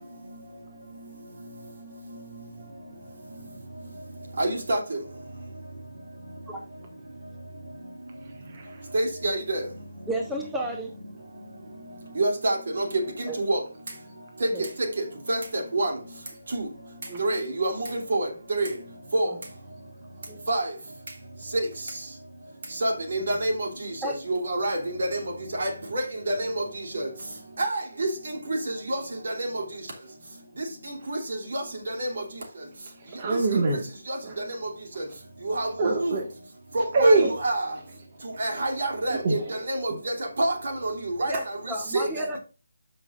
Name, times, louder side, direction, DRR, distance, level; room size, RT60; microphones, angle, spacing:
voice 1, 4.4-4.8 8.9-9.6 12.2-13.0 13.4-13.6 15.3-15.4 15.7-15.9 16.5-16.6 17.2-18.7 19.1-19.3 20.5-20.6 21.5-21.6 22.8-23.7 24.3-25.2 25.6-26.5 26.9-27.1 27.6-28.1 28.5-28.6 28.9-29.0 29.2-29.5 31.1-31.2 31.5-31.6 32.0-32.1 35.5-35.7 36.0-36.1 36.7-37.6 38.4-39.4 39.7-40.5 40.8-41.4 41.9-42.0, right 2 dB, 55° right, 2.9 m, -26 dB
voice 2, 8.2-8.9 32.9-33.8 34.2-34.4 35.8-36.3 36.9-37.3 38.3-38.4 39.1-40.0, right 2 dB, 35° right, 1.7 m, -25 dB
voice 3, 10.1-10.9 13.3-13.4 14.5-14.7 17.1-17.2 20.3-20.4 24.0-24.2 41.3-42.4, right 1 dB, 5° right, 0.9 m, -32 dB
13.0 x 5.8 x 2.5 m
figure-of-eight pair, 150°, 0 cm